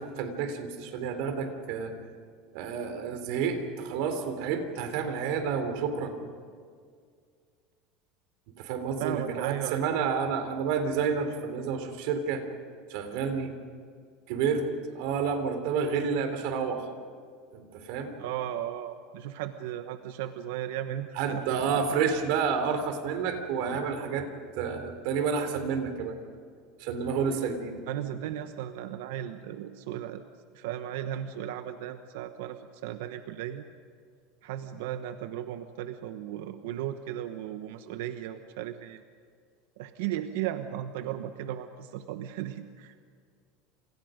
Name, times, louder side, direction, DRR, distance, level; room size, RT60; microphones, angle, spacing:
voice 1, 0.0-1.9 2.5-6.1 8.6-12.4 12.9-13.5 14.3-16.8 17.5-18.1 21.1-24.3 24.6-26.2 26.8-27.8, right 6 dB, 65° right, 7 dB, 3.7 m, -30 dB
voice 2, 9.0-10.0 18.2-21.8 27.9-30.2 30.5-33.7 34.4-39.0 39.8-42.9, right 11 dB, 80° right, 8 dB, 1.2 m, -36 dB
29.0 x 27.5 x 5.2 m, 2.1 s
supercardioid pair, 155°, 0 cm